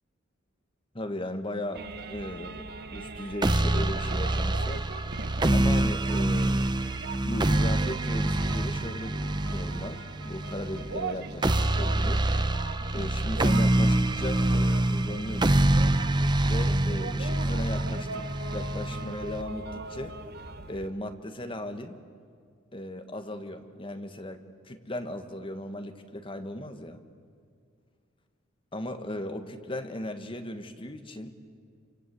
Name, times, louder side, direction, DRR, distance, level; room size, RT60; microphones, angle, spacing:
voice 1, 0.9-2.7 2.9-4.8 5.5-6.6 7.2-12.3 12.9-15.7 16.4-18.2 18.5-20.1 20.7-22.0 22.7-27.0 28.7-31.3, left 1 dB, 25° left, 7 dB, 1.5 m, -37 dB
sound 1, 1.7-20.9, right 3 dB, 50° right, 1.1 m, -41 dB
sound 2, 3.4-19.4, right 1 dB, 20° right, 0.7 m, -26 dB
27.5 x 25.0 x 8.4 m, 2.1 s
head